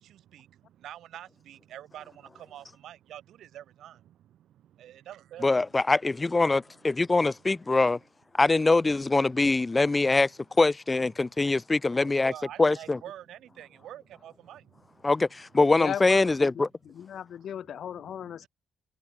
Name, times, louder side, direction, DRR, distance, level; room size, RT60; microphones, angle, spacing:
voice 1, 0.0-5.6 7.0-7.1 9.3-9.4 11.2-11.6 12.0-15.1 18.4-18.5, right 12 dB, 75° right, 7.3 m, -47 dB
voice 2, 5.4-8.0 8.4-10.3 10.6-12.3 12.6-13.0 15.0-16.7, left 3 dB, 20° left, 0.6 m, -23 dB
voice 3, 15.8-16.3 16.8-18.5, left 9 dB, 65° left, 2.3 m, -36 dB
cardioid pair, 90°, 0 cm